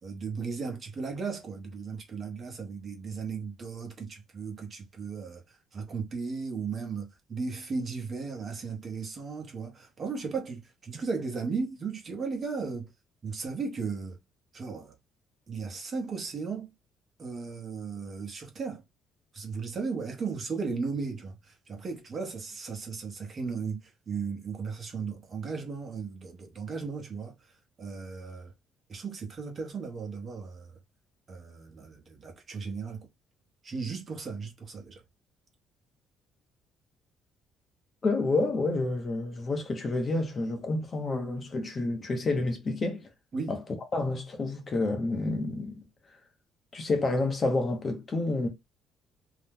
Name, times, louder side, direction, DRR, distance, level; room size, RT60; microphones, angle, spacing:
voice 1, 0.0-12.9 13.2-14.2 14.5-14.9 15.5-16.7 17.2-18.8 19.3-27.4 27.8-28.5 28.9-30.8 31.3-33.1 33.6-35.0 43.3-43.5, right 5 dB, 35° right, 1.0 m, -36 dB
voice 2, 38.0-43.0 43.5-43.6 43.9-45.8 46.7-48.5, left 2 dB, 30° left, 0.7 m, -29 dB
2.7 x 2.2 x 3.5 m
cardioid pair, 130°, 0 cm